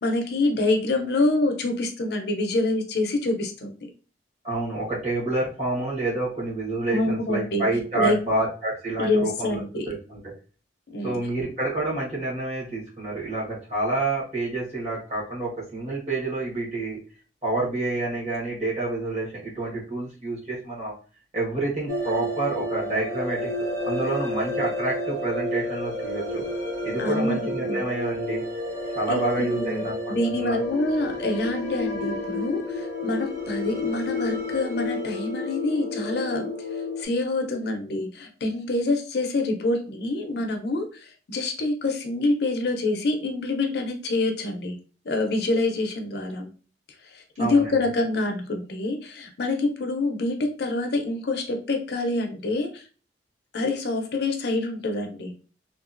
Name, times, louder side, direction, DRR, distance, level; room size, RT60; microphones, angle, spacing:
voice 1, 0.0-3.8 6.9-7.6 7.9-8.2 9.0-9.9 10.9-11.2 27.0-27.8 29.1-36.5 37.0-44.8 45.0-46.5 47.1-52.8 53.5-55.3, left 2 dB, 60° left, 4 dB, 0.5 m, -26 dB
voice 2, 4.4-10.2 11.0-17.0 17.4-20.9 21.3-26.4 26.8-28.4 28.9-30.6 47.4-47.8, right 2 dB, 35° right, -7 dB, 1.2 m, -28 dB
sound 1, 21.9-37.0, left 1 dB, 85° right, 1.3 m, -30 dB
2.9 x 2.3 x 2.4 m, 0.38 s
head